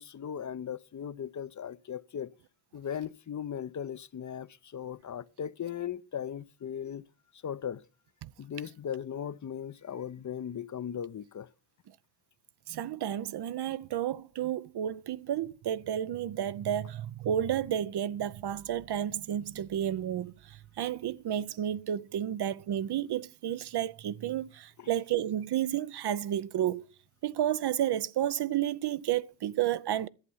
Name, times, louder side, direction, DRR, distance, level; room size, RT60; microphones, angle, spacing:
voice 1, 0.0-2.3 2.7-7.0 7.4-7.8 8.4-11.5 24.8-24.9, left 8 dB, 35° left, 0.6 m, -38 dB
voice 2, 12.7-26.9 27.2-30.1, right 11 dB, 55° right, 0.6 m, -31 dB
11.5 x 7.8 x 5.5 m
supercardioid pair, 45°, 50 cm